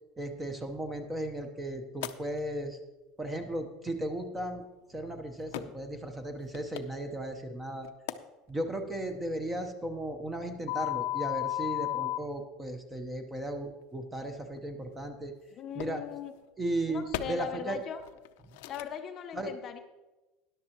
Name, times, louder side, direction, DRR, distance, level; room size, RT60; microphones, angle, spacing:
voice 1, 0.2-2.8 3.2-4.6 4.9-7.9 8.5-15.3 15.7-16.0 16.6-17.8 19.3-19.5, right 1 dB, 10° right, 6 dB, 0.9 m, -36 dB
sound 1, 2.0-2.1 4.4-4.5 5.5-5.6 6.4-6.8 7.8-8.1 10.7-12.2 14.6-14.7 15.8-16.0 17.1-17.2 18.0-18.3 18.6-18.8, left 15 dB, 85° left, 0.6 m, -33 dB
voice 2, 15.5-16.3 16.9-18.0 18.7-19.8, left 9 dB, 30° left, 6 dB, 0.6 m, -39 dB
13.5 x 11.0 x 3.0 m, 1.1 s
cardioid pair, 165°, 0 cm